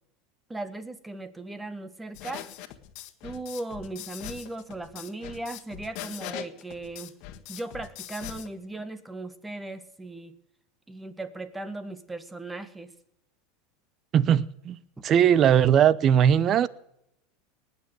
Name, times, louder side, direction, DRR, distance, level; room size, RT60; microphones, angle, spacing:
voice 1, 0.5-2.5 3.2-7.1 7.5-10.3 10.9-12.9, right 2 dB, 10° right, 1.5 m, -37 dB
sound 1, 2.1-8.5, left 13 dB, 60° left, 1.5 m, -41 dB
voice 2, 14.1-14.8 15.0-16.7, right 9 dB, 40° right, 0.8 m, -19 dB
19.5 x 7.0 x 9.8 m
hypercardioid pair, 95°, 0 cm